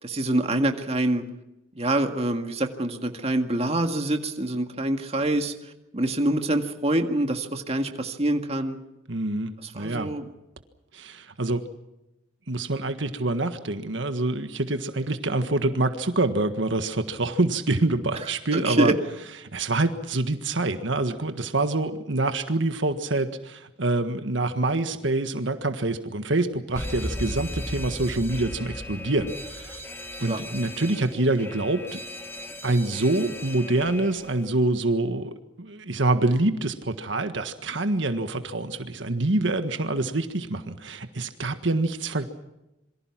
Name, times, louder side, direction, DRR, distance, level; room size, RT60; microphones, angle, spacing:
voice 1, 0.0-1.2 1.8-5.5 5.9-8.8 9.6-10.3 18.5-18.9 30.3-30.4, right 1 dB, 30° right, 5 dB, 1.9 m, -25 dB
voice 2, 9.1-10.1 10.9-11.7 12.5-18.9 19.5-29.8 30.2-32.0 32.6-42.3, right 2 dB, 65° right, 8 dB, 1.6 m, -26 dB
Alarm, 26.8-34.5, left 1 dB, 10° left, 1.4 m, -36 dB
27.0 x 23.5 x 6.0 m, 0.94 s
head